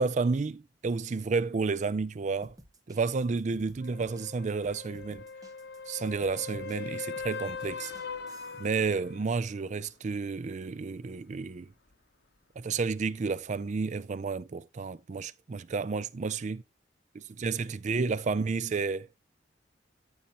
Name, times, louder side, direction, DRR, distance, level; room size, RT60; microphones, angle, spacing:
voice 1, 0.0-2.6 2.9-5.2 5.9-7.9 8.6-11.7 12.6-16.6 17.1-19.1, right 4 dB, 40° right, 0.4 m, -31 dB
sound 1, 2.3-8.8, right 1 dB, 20° right, 1.0 m, -55 dB
sound 2, 3.8-9.5 13.6-13.7, left 5 dB, 65° left, 0.9 m, -41 dB
14.0 x 5.4 x 2.9 m
head